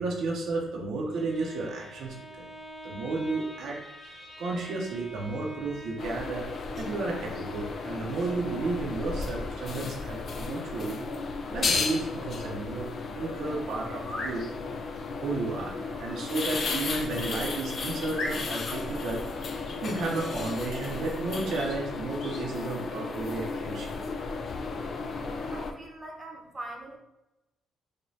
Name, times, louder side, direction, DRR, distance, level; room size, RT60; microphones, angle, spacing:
voice 1, 0.0-2.5 2.8-6.5 6.8-11.0 11.5-12.9 13.1-14.4 15.2-24.0, right 3 dB, 75° right, -1 dB, 0.6 m, -33 dB
Bowed string instrument, 0.9-6.3, equal, 10° left, 1.5 m, -45 dB
sound 1, 6.0-25.7, left 4 dB, 50° left, 0.4 m, -34 dB
sound 2, 13.9-14.4 16.9-17.1 17.6-17.7 18.1-18.8 21.5-21.8 22.2-22.5, left 2 dB, 70° left, 1.2 m, -37 dB
voice 2, 25.5-27.0, right 1 dB, 30° right, 0 dB, 0.8 m, -42 dB
4.9 x 2.2 x 2.7 m, 0.95 s
cardioid pair, 90°, 0 cm